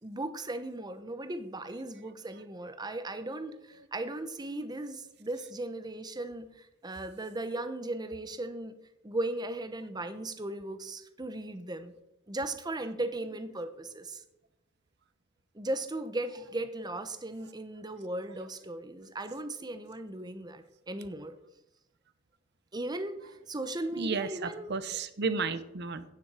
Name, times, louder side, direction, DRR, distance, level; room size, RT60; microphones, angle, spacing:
voice 1, 0.0-8.7 9.0-11.9 12.3-14.2 15.5-21.3 22.7-23.2 23.5-24.8, right 2 dB, 20° right, 10 dB, 0.9 m, -37 dB
voice 2, 23.9-26.0, right 4 dB, 55° right, 13 dB, 0.9 m, -33 dB
10.5 x 9.3 x 4.9 m, 0.86 s
head